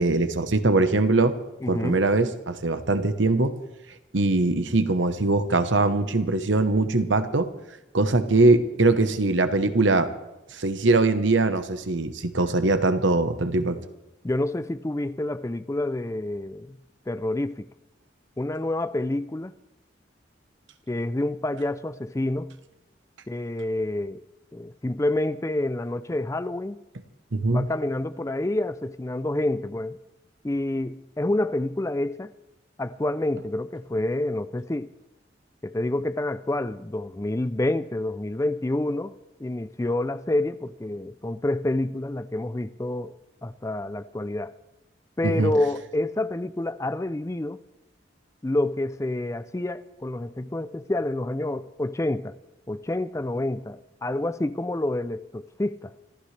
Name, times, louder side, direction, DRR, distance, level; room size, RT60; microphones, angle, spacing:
voice 1, 0.0-1.3 1.7-3.5 4.1-7.5 7.9-10.1 10.5-13.8 27.3-27.7 45.2-45.5, right 2 dB, 80° right, 1.1 m, -22 dB
voice 2, 1.6-2.0 14.2-16.8 17.1-17.7 18.4-19.5 20.9-22.6 23.3-24.2 24.5-26.8 27.5-30.0 30.4-32.3 32.8-34.9 35.6-44.5 45.2-47.6 48.4-52.4 52.7-55.9, left 1 dB, 15° left, 0.4 m, -28 dB
25.0 x 14.5 x 3.3 m
head